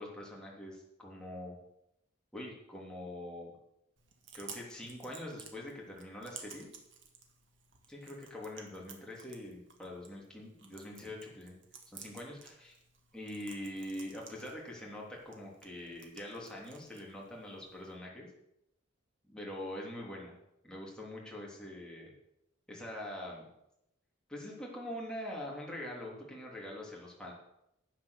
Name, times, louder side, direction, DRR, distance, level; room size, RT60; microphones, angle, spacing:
voice 1, 0.0-1.6 2.3-3.5 4.3-6.7 7.9-11.5 11.9-12.8 13.1-18.3 19.3-20.3 20.6-22.1 22.7-23.5 24.3-27.3, left 1 dB, 5° left, -3 dB, 3.2 m, -44 dB
Chewing mastication, 4.0-18.0, right 6 dB, 65° right, 2.0 m, -55 dB
11.5 x 8.6 x 6.5 m, 0.82 s
head